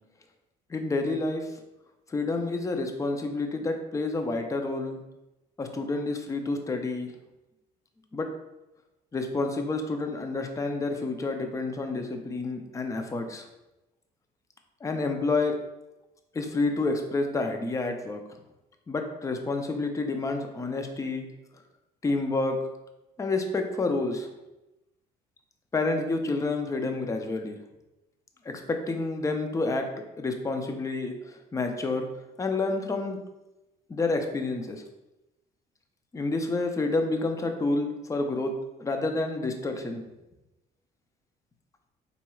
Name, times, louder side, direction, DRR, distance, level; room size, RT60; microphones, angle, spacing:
voice 1, 0.7-1.5 2.1-5.0 5.6-7.1 8.1-8.3 9.1-13.5 14.8-15.5 16.3-18.2 18.9-21.2 22.0-22.6 23.2-24.3 25.7-27.6 28.7-29.8 30.2-32.1 32.4-33.2 33.9-34.8 36.1-38.5 38.8-40.0, left 3 dB, 20° left, 5 dB, 0.5 m, -29 dB
4.4 x 4.0 x 2.3 m, 0.96 s
cardioid pair, 110°, 17 cm